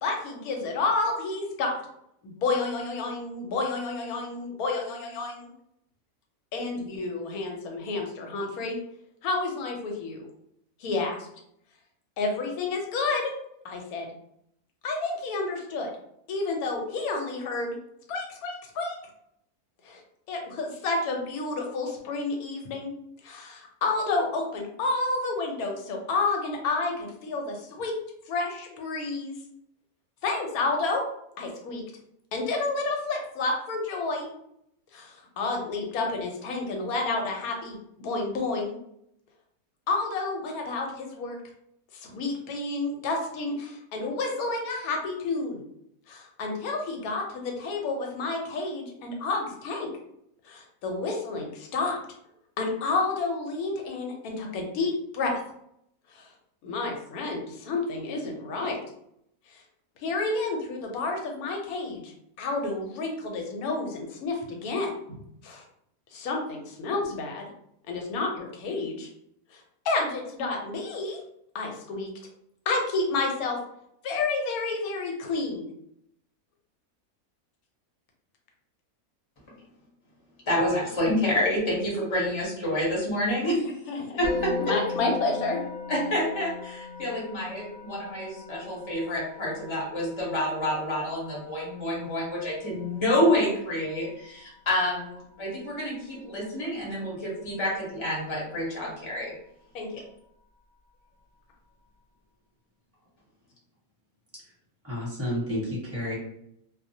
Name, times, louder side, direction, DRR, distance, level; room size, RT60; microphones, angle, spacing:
voice 1, 0.0-1.7 2.2-5.5 6.5-8.8 9.2-10.3 10.8-11.2 12.2-13.3 13.6-14.1 14.8-15.9 16.3-17.8 18.1-19.0 19.8-20.0 20.3-22.9 23.2-27.9 28.3-29.4 30.2-31.0 31.4-31.8 32.3-34.3 34.9-38.8 39.9-41.4 41.9-45.6 46.1-49.9 50.4-52.0 52.6-55.3 56.1-56.3 56.6-58.8 59.5-59.6 60.0-62.1 62.4-64.9 65.4-65.6 66.1-67.5 67.9-69.1 69.5-71.2 71.5-72.1 72.7-73.6 74.0-75.7 83.9-84.2 84.7-85.6 99.7-100.0, left 3 dB, 80° left, 2 dB, 1.1 m, -30 dB
voice 2, 80.5-83.7 84.2-84.7 85.9-99.3, left 1 dB, 25° left, -5 dB, 0.7 m, -28 dB
Musical instrument, 84.2-95.3, left 4 dB, 60° right, 0.7 m, -40 dB
voice 3, 104.8-106.1, left 1 dB, 10° right, -7 dB, 1.0 m, -30 dB
2.4 x 2.0 x 2.6 m, 0.75 s
omnidirectional pair, 1.5 m